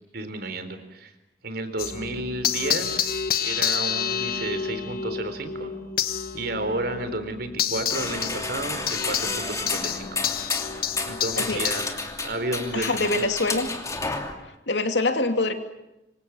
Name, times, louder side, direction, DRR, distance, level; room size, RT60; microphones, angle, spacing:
voice 1, 0.1-1.1 1.4-5.7 6.3-10.2 11.1-11.9 12.2-13.3, right 2 dB, 60° right, 10 dB, 3.9 m, -32 dB
sound 1, 1.8-12.0, left 8 dB, 55° left, 1.3 m, -29 dB
sound 2, 7.9-14.3, left 3 dB, 20° left, 2.9 m, -31 dB
voice 2, 12.7-13.7 14.7-15.5, left 2 dB, 70° left, 7 dB, 2.8 m, -24 dB
27.5 x 25.5 x 7.2 m, 0.92 s
head